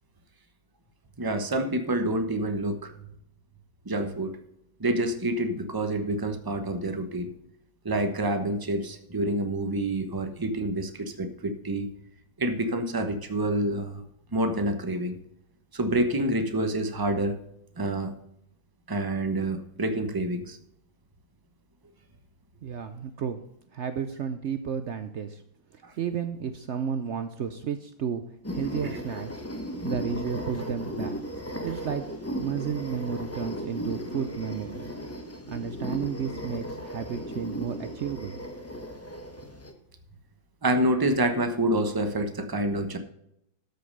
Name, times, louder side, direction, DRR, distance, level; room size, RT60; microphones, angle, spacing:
voice 1, 1.2-2.9 3.8-4.4 4.8-7.3 7.8-11.9 12.4-14.0 14.3-15.2 15.7-17.4 17.8-18.1 18.9-20.6 25.8-25.9 28.8-29.0 40.6-43.0, right 1 dB, 20° right, 7 dB, 0.7 m, -27 dB
voice 2, 22.6-23.4 23.7-25.4 25.7-28.2 28.5-29.4 29.8-31.2 31.6-32.0 32.4-34.8 35.5-38.6, right 7 dB, 85° right, 9 dB, 0.6 m, -32 dB
sound 1, 28.4-39.7, equal, 10° left, 1.0 m, -36 dB
13.0 x 6.7 x 5.4 m, 0.78 s
omnidirectional pair, 2.1 m